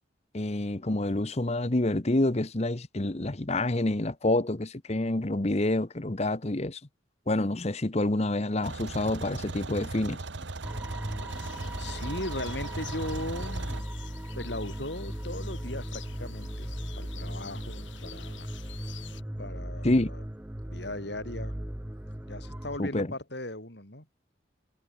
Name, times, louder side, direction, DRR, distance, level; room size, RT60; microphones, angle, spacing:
voice 1, 0.3-6.8 7.3-10.2 19.8-20.1 22.8-23.1, left 1 dB, 35° left, 1.0 m, -27 dB
sound 1, 8.6-13.8, right 3 dB, 70° right, 1.3 m, -38 dB
sound 2, 10.6-22.8, right 1 dB, 10° right, 0.7 m, -38 dB
sound 3, 11.3-19.2, left 6 dB, 80° left, 5.6 m, -48 dB
voice 2, 11.8-13.8 14.4-18.5 19.4-20.2 20.6-21.5 22.3-24.1, left 1 dB, 60° left, 6.4 m, -38 dB
head